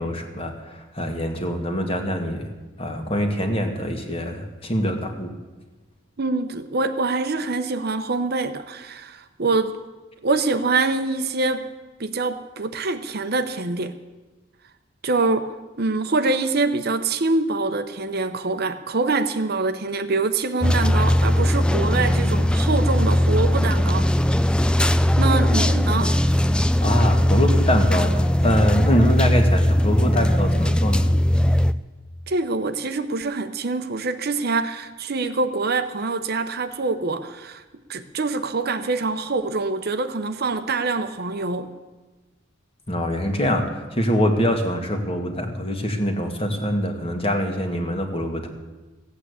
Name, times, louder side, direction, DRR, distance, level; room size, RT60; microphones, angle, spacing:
voice 1, 0.0-2.5 2.8-5.3 26.8-31.1 42.9-48.5, equal, 30° left, 4 dB, 1.8 m, -24 dB
voice 2, 6.2-9.8 10.2-11.7 12.0-14.0 15.0-15.5 15.8-24.1 25.2-26.2 32.3-37.6 37.9-41.7, right 3 dB, 55° right, 9 dB, 0.8 m, -25 dB
sound 1, 20.6-31.7, left 1 dB, 5° left, 0.4 m, -19 dB
15.0 x 8.7 x 8.2 m, 1.2 s
head